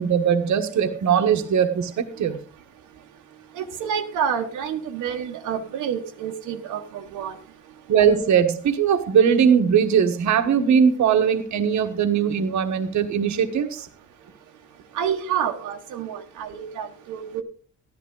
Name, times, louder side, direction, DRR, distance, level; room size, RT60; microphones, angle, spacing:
voice 1, 0.0-2.4 7.9-13.9, right 7 dB, 70° right, 6 dB, 1.4 m, -20 dB
voice 2, 3.5-7.4 14.9-17.4, right 8 dB, 90° right, 2 dB, 1.3 m, -28 dB
13.5 x 10.5 x 3.8 m, 0.41 s
cardioid pair, 90°, 30 cm